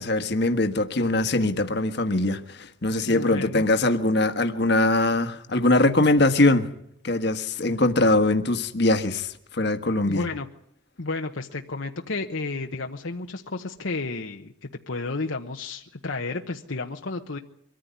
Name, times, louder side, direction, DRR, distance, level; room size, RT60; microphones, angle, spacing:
voice 1, 0.0-6.7 7.0-10.2, left 2 dB, 55° left, 1.5 m, -22 dB
voice 2, 3.0-3.6 10.0-10.5 11.0-17.4, left 3 dB, 70° left, 1.1 m, -32 dB
24.0 x 14.0 x 9.6 m
head